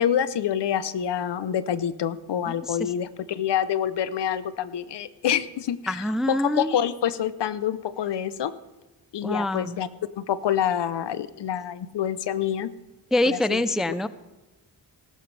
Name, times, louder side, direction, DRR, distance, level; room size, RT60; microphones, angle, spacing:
voice 1, 0.0-8.5 9.1-9.9 10.2-12.7 13.3-13.6, left 9 dB, 70° left, 16 dB, 0.8 m, -27 dB
voice 2, 2.5-2.9 5.9-6.8 9.2-9.8 13.1-14.1, left 1 dB, ahead, 15 dB, 0.4 m, -25 dB
16.5 x 13.5 x 3.3 m, 1.2 s
cardioid pair, 70°, 44 cm